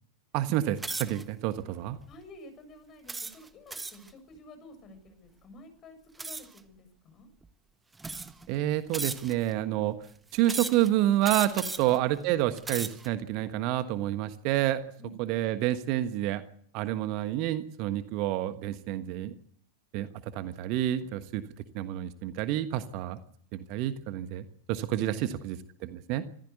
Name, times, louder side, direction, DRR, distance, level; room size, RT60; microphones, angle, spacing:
voice 1, 0.3-2.0 8.5-10.0 10.3-14.8 15.2-16.4 16.7-19.4 19.9-21.4 21.7-23.2 23.5-25.6 25.8-26.2, right 13 dB, 45° right, 11 dB, 1.4 m, -29 dB
sound 1, 0.8-1.2 1.9-2.1 3.1-4.1 6.2-6.6 7.4-7.5 8.0-8.5 8.9-9.5 10.4-10.9 11.2-12.0 12.5-13.1, right 3 dB, 10° right, 1.4 m, -36 dB
voice 2, 2.1-7.3 11.8-12.0 15.0-15.2 25.2-25.4, left 1 dB, 30° left, 9 dB, 7.2 m, -50 dB
26.0 x 15.5 x 8.3 m, 0.63 s
figure-of-eight pair, 90°, 0 cm